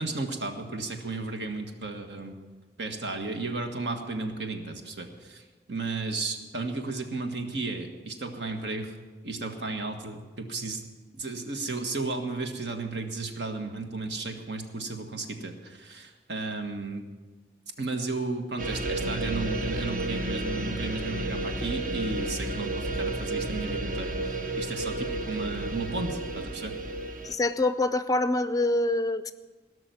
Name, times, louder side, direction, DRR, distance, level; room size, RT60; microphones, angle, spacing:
voice 1, 0.0-2.4 2.8-8.9 9.2-10.8 11.1-17.0 17.8-24.2 24.6-26.8, right 3 dB, 75° right, 5 dB, 1.6 m, -34 dB
sound 1, 18.6-27.3, right 2 dB, 45° right, 1.0 m, -32 dB
voice 2, 27.2-29.3, left 2 dB, 20° left, 12 dB, 0.4 m, -25 dB
17.5 x 6.3 x 9.3 m, 1.3 s
head